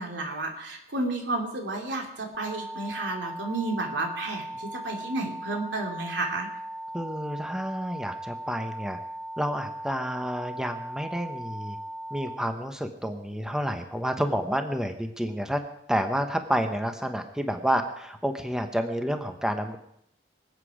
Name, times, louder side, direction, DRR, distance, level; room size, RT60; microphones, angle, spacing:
voice 1, 0.0-6.5, right 2 dB, 90° right, 1 dB, 2.8 m, -31 dB
sound 1, 2.3-12.4, right 1 dB, 20° right, 3.9 m, -38 dB
voice 2, 6.9-9.0 9.4-11.8 12.1-15.6 15.9-19.8, equal, 5° right, 6 dB, 1.0 m, -29 dB
24.5 x 8.3 x 4.9 m, 0.72 s
head